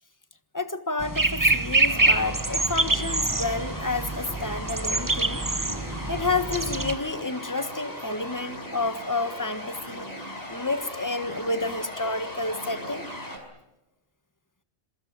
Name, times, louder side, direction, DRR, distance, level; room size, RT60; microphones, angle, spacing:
voice 1, 0.5-5.4 6.1-10.1 10.5-13.0, left 3 dB, 15° left, 10 dB, 1.4 m, -30 dB
sound 1, 1.0-6.9, right 2 dB, 20° right, 1.0 m, -25 dB
sound 2, 1.9-13.4, left 1 dB, 35° left, 5.6 m, -38 dB
27.0 x 23.5 x 7.5 m, 0.98 s
omnidirectional pair, 1.2 m